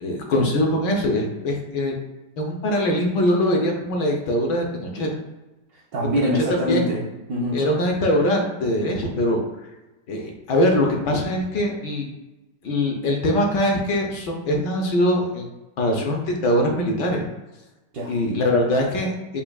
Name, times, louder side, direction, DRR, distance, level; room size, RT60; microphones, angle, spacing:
voice 1, 0.0-1.9 2.4-5.1 6.0-6.3 6.7-6.9 7.5-9.4 10.1-12.1 12.6-15.5 15.8-17.2 18.1-19.4, left 1 dB, 70° left, 1 dB, 1.2 m, -22 dB
voice 2, 5.7-7.6 17.9-18.1, equal, 70° right, -3 dB, 0.9 m, -25 dB
5.8 x 2.3 x 2.2 m, 1.1 s
omnidirectional pair, 2.1 m